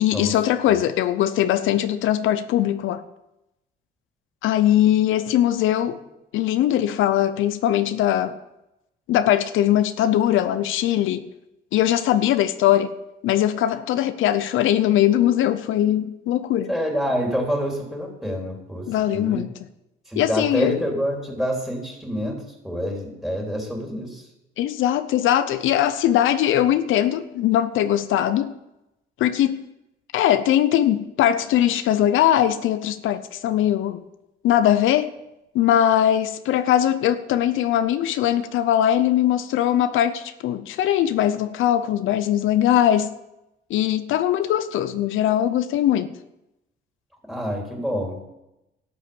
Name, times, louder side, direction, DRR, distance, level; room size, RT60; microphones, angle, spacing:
voice 1, 0.0-3.0 4.4-6.0 6.3-8.4 9.1-11.2 11.7-12.9 13.2-16.7 18.9-19.5 20.2-20.8 24.6-28.5 29.2-29.6 30.1-34.0 34.4-35.1 35.5-43.1 43.7-46.1, left 11 dB, 85° left, 0.6 m, -20 dB
voice 2, 16.7-18.9 19.1-19.4 20.1-24.2 47.3-48.2, equal, ahead, 3.7 m, -27 dB
12.5 x 8.2 x 7.1 m
cardioid pair, 90°, 20 cm